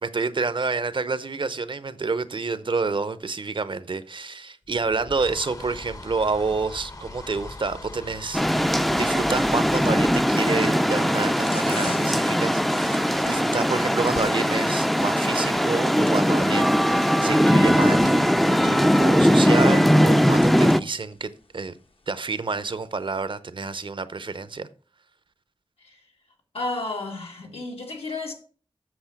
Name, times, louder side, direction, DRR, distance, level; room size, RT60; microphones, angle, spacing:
voice 1, 0.0-8.4 9.0-21.8 22.1-24.7, right 4 dB, 60° right, 0.7 m, -28 dB
sound 1, 4.6-15.2, left 2 dB, 40° left, 0.8 m, -43 dB
sound 2, 8.3-20.8, equal, ahead, 0.4 m, -20 dB
sound 3, 10.1-23.3, left 3 dB, 70° left, 1.1 m, -47 dB
voice 2, 26.5-28.3, left 2 dB, 85° left, 1.9 m, -32 dB
7.9 x 6.5 x 5.9 m
wide cardioid pair, 75°, 10 cm